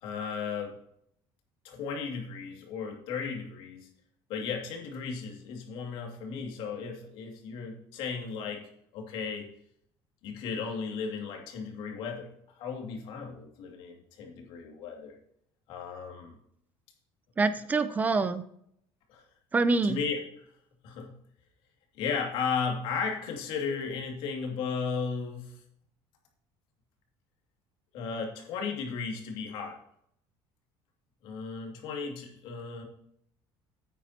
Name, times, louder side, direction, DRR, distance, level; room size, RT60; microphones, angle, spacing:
voice 1, 0.0-0.8 1.6-3.9 4.3-8.7 8.9-9.5 10.2-15.1 15.7-16.4 19.1-19.2 19.8-20.2 20.8-21.1 21.9-25.6 27.9-29.8 31.2-32.8, left 5 dB, 60° left, 1 dB, 2.5 m, -35 dB
voice 2, 17.4-18.4 19.5-20.0, right 3 dB, 15° right, 13 dB, 0.4 m, -25 dB
9.2 x 9.1 x 2.9 m, 0.70 s
cardioid pair, 165°, 10 cm